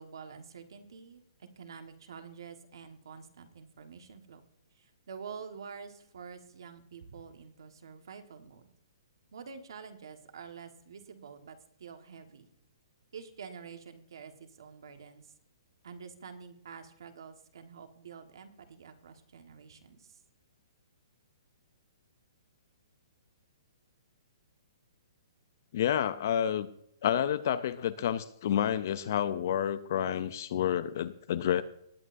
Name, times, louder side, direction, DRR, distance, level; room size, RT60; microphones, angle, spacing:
voice 1, 0.0-4.4 4.7-8.7 9.3-12.5 13.1-15.3 15.8-20.2, right 6 dB, 55° right, 6 dB, 1.4 m, -48 dB
voice 2, 25.7-26.7 27.0-31.6, left 9 dB, 35° left, 15 dB, 0.4 m, -29 dB
19.0 x 9.8 x 2.6 m, 0.72 s
hypercardioid pair, 180°, 3 cm